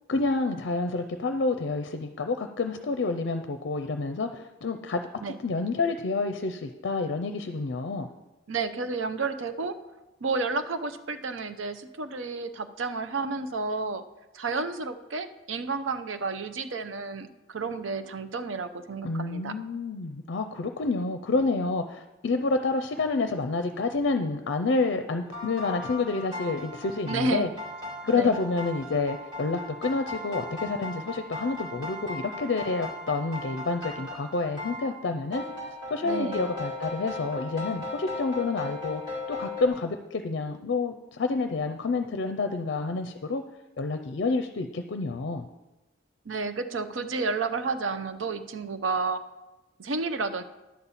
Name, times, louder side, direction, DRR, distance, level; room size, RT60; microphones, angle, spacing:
voice 1, 0.1-5.1 5.4-8.1 19.0-27.5 28.0-35.4 35.9-39.0 39.3-43.4 43.8-45.5, left 3 dB, 60° left, 7 dB, 0.5 m, -28 dB
voice 2, 8.5-9.7 10.2-14.0 14.3-19.5 27.1-27.5 28.1-28.3 36.0-36.5 46.3-49.2 49.8-50.4, right 4 dB, 85° right, 10 dB, 0.6 m, -31 dB
sound 1, 25.3-39.7, left 2 dB, 25° right, 2.2 m, -37 dB
10.5 x 4.1 x 7.1 m, 1.1 s
head